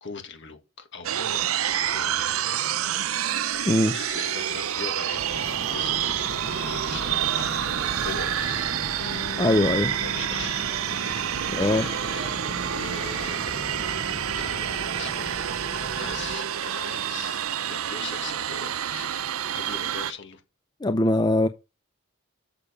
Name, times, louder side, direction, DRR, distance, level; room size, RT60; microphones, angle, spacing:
voice 1, 0.0-2.6 3.8-9.2 10.0-10.7 10.9-13.9 14.3-15.4 15.7-19.1 19.5-20.4, left 5 dB, 60° left, 1.7 m, -40 dB
sound 1, 1.0-20.1, right 10 dB, 85° right, 0.6 m, -28 dB
sound 2, 5.1-16.4, right 3 dB, 55° right, 1.2 m, -36 dB
Bass guitar, 9.0-13.1, left 4 dB, 85° left, 4.1 m, -44 dB
voice 2, 9.4-9.9 11.5-11.9 20.8-21.5, left 1 dB, 20° left, 0.4 m, -21 dB
6.8 x 6.6 x 5.2 m
head